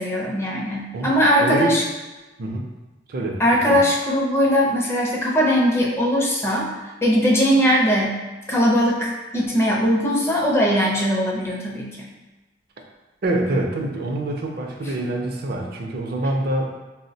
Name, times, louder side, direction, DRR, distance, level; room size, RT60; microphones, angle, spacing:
voice 1, 0.0-1.8 3.4-6.7 7.0-8.1 8.5-12.1, equal, 15° left, -3 dB, 0.4 m, -20 dB
voice 2, 1.4-1.8 2.4-2.7 3.1-3.4 3.7-3.8 13.2-16.7, right 1 dB, 55° right, 1 dB, 0.4 m, -25 dB
4.2 x 2.0 x 2.6 m, 1.2 s
head